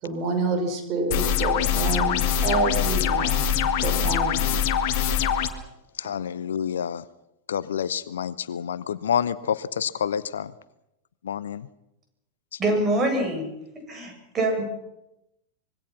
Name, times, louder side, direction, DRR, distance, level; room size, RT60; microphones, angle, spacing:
voice 1, 0.0-4.6, right 3 dB, 40° right, 5 dB, 5.2 m, -28 dB
sound 1, 1.1-5.5, left 8 dB, 45° left, 1.8 m, -23 dB
voice 2, 6.0-7.0 7.5-10.5 11.2-11.7 12.5-12.6, left 8 dB, 65° left, 19 dB, 0.8 m, -28 dB
voice 3, 12.6-13.5 13.9-14.6, right 2 dB, 25° right, 3 dB, 7.9 m, -24 dB
25.0 x 22.5 x 5.9 m, 0.87 s
figure-of-eight pair, 90°, 0 cm